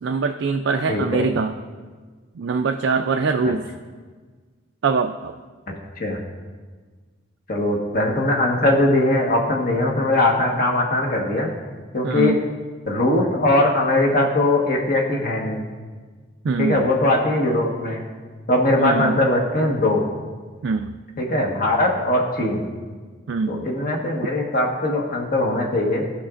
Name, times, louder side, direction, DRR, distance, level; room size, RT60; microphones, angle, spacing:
voice 1, 0.0-1.6 2.4-3.7 4.8-5.3 12.0-12.4 16.4-16.9 18.8-19.2 20.6-20.9 23.3-23.6, right 4 dB, 65° right, 5 dB, 0.4 m, -23 dB
voice 2, 0.9-1.3 3.4-3.5 6.0-6.2 7.5-11.5 11.9-12.4 12.9-15.7 16.6-18.0 18.5-20.0 21.2-22.7 23.5-26.0, left 1 dB, 45° left, -1 dB, 1.3 m, -20 dB
16.5 x 5.9 x 2.5 m, 1.5 s
head